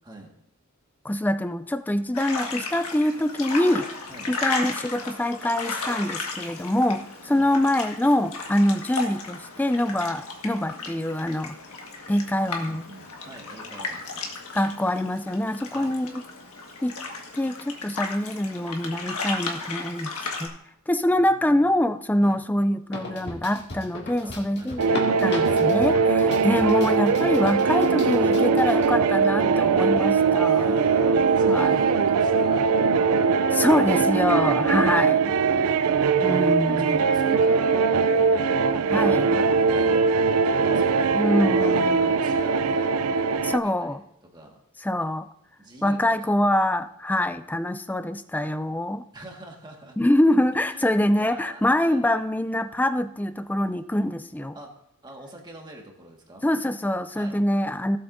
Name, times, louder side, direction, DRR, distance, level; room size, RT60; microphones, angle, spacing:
voice 1, 0.0-0.3 4.1-4.3 7.3-7.5 12.6-14.3 15.7-16.0 21.1-21.8 22.2-22.4 24.2-25.0 30.4-33.3 35.4-35.9 36.4-41.2 41.5-42.9 43.6-44.0 44.3-44.6 45.6-46.2 46.5-46.6 49.1-50.0 50.7-52.0 54.5-54.7 55.0-56.5 57.1-57.4, right 1 dB, 20° right, 1 dB, 1.7 m, -45 dB
voice 2, 1.0-3.9 4.3-11.6 12.1-12.9 14.5-16.2 16.8-17.0 17.3-20.1 20.4-20.5 20.9-24.8 25.2-30.7 31.5-31.8 33.5-35.3 36.2-37.0 38.9-39.4 41.1-42.1 43.4-44.0 44.8-45.3 45.8-49.0 50.0-54.6 56.4-58.0, left 1 dB, 10° left, 11 dB, 0.3 m, -24 dB
sound 1, 2.1-20.5, left 3 dB, 85° left, 1.7 m, -35 dB
sound 2, 22.9-28.9 29.2-29.3 30.2-30.3, left 2 dB, 50° left, 2.1 m, -37 dB
sound 3, 24.8-43.6, right 5 dB, 80° right, 0.4 m, -21 dB
16.5 x 8.0 x 2.6 m, 0.78 s
head